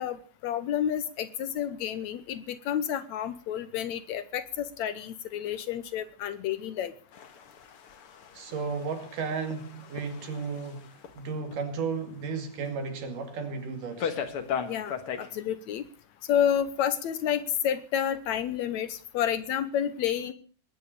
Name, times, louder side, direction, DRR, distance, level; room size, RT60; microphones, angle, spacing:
voice 1, 0.0-6.9 14.7-15.9 16.3-20.3, left 9 dB, 70° left, 13 dB, 2.0 m, -30 dB
sound 1, 7.1-11.2 11.5-11.6 12.2-12.3 12.6-12.7 14.0-15.3, left 7 dB, 50° left, 2.1 m, -37 dB
voice 2, 8.4-10.8 11.2-14.1, right 5 dB, 80° right, 6 dB, 4.0 m, -34 dB
20.0 x 10.0 x 6.8 m, 0.42 s
omnidirectional pair, 3.7 m